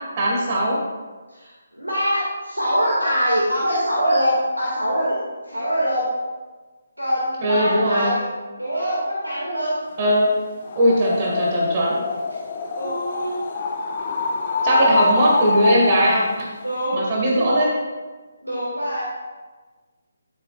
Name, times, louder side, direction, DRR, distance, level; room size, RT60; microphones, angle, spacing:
voice 1, 0.2-0.8 7.4-8.1 10.0-10.3 10.8-12.0 14.6-16.2 16.9-17.7, right 1 dB, 35° right, -3 dB, 1.8 m, -19 dB
voice 2, 1.3-5.2 5.4-6.1 7.0-8.2 8.6-9.8 12.7-13.7 14.5-15.1 16.6-17.0 17.3-17.7 18.4-19.0, equal, 90° right, -6 dB, 2.1 m, -24 dB
sound 1, 10.6-16.4, left 3 dB, 40° left, 0.8 m, -25 dB
12.0 x 7.3 x 2.5 m, 1.3 s
figure-of-eight pair, 145°, 0 cm